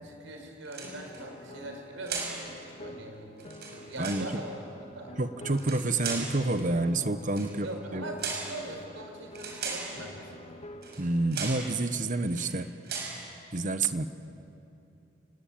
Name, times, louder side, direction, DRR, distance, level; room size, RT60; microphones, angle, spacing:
voice 1, 0.0-4.6 4.9-5.2 7.6-10.5, right 1 dB, 85° right, 3 dB, 5.1 m, -42 dB
sound 1, 0.6-1.2 2.1-2.4 3.4-4.3 5.5-6.3 7.3-7.5 8.2-8.5 9.3-9.9 10.8-11.0 11.3-11.7 12.2-12.5 12.8-13.2, right 5 dB, 60° right, 6.0 m, -36 dB
sound 2, 0.8-11.3, left 1 dB, 35° left, 1.5 m, -47 dB
voice 2, 5.2-8.0 11.0-12.7 13.5-14.1, right 2 dB, 45° right, 11 dB, 1.1 m, -28 dB
29.5 x 19.5 x 8.7 m, 2.9 s
head